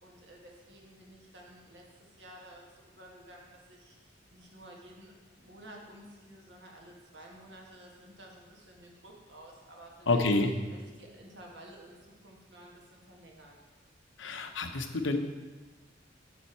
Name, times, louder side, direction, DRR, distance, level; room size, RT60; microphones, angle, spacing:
voice 1, 0.0-10.2 10.7-13.6, right 1 dB, 65° right, -1 dB, 1.7 m, -52 dB
voice 2, 10.1-10.5 14.2-15.2, left 2 dB, 80° left, 6 dB, 0.8 m, -28 dB
7.6 x 7.0 x 4.5 m, 1.2 s
head